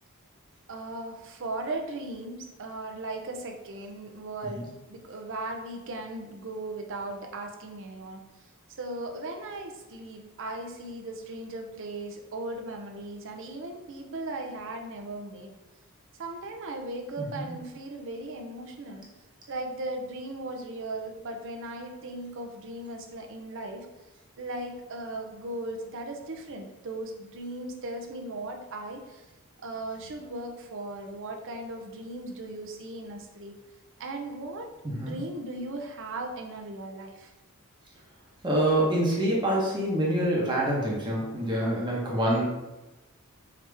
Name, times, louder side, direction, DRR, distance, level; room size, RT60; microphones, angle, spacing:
voice 1, 0.7-8.2 8.8-15.5 16.2-19.0 19.5-23.9 24.4-29.2 29.6-33.5 34.0-34.7 34.9-37.3, right 2 dB, 60° right, 3 dB, 0.6 m, -37 dB
voice 2, 17.2-17.5 34.8-35.2 38.4-42.4, right 1 dB, 20° right, -4 dB, 0.9 m, -26 dB
4.9 x 2.8 x 3.4 m, 1.0 s
head